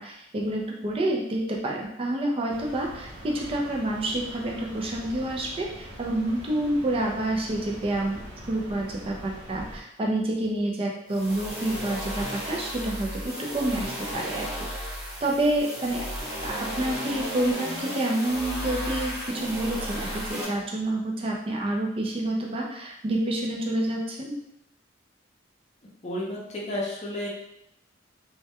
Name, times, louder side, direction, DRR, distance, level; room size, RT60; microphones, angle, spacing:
voice 1, 0.0-14.5 15.2-16.0 16.4-24.4, right 1 dB, 30° right, -1 dB, 0.4 m, -28 dB
sound 1, 2.5-9.8, equal, 85° right, 0.7 m, -43 dB
sound 2, 11.1-20.5, equal, 15° right, 0.8 m, -34 dB
voice 2, 26.0-27.3, left 1 dB, 35° left, -3 dB, 0.6 m, -31 dB
2.2 x 2.1 x 2.8 m, 0.79 s
head